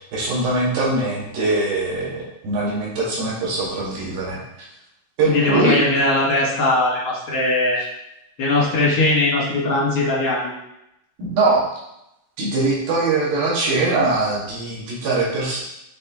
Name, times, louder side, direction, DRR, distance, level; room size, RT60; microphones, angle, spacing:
voice 1, 0.0-4.4 5.2-5.8 11.2-11.7 12.4-15.6, right 3 dB, 60° right, -5 dB, 3.2 m, -22 dB
voice 2, 5.2-7.8 8.4-10.5, left 2 dB, 55° left, -6 dB, 1.5 m, -19 dB
9.9 x 3.6 x 3.6 m, 0.84 s
omnidirectional pair, 5.0 m